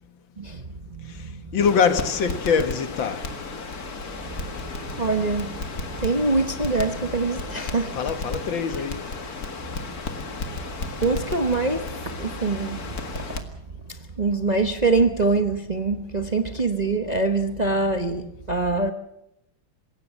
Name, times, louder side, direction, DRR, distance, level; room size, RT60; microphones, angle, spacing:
voice 1, 0.4-1.5 4.6-5.5 5.8-8.0 11.0-12.9 13.3-13.4 13.9-18.9, right 3 dB, 30° right, 0.9 m, -24 dB
voice 2, 1.0-3.3 7.9-9.1, left 6 dB, 70° left, 2.1 m, -24 dB
Crackle, 1.6-13.4, left 3 dB, 50° left, 2.3 m, -34 dB
27.5 x 16.5 x 7.4 m
omnidirectional pair, 2.2 m